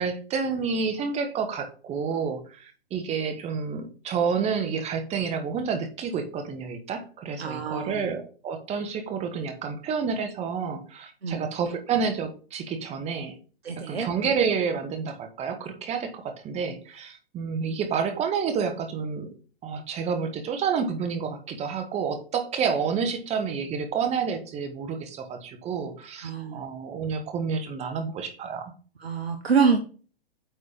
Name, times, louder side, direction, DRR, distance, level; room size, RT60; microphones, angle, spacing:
voice 1, 0.0-13.4 13.9-19.3 19.6-28.7, right 6 dB, 20° right, 7 dB, 1.1 m, -29 dB
voice 2, 7.4-8.1 11.2-11.5 13.6-14.1 26.2-26.6 29.0-29.8, right 5 dB, 75° right, 5 dB, 1.0 m, -26 dB
8.9 x 3.3 x 5.3 m, 0.39 s
figure-of-eight pair, 110°, 31 cm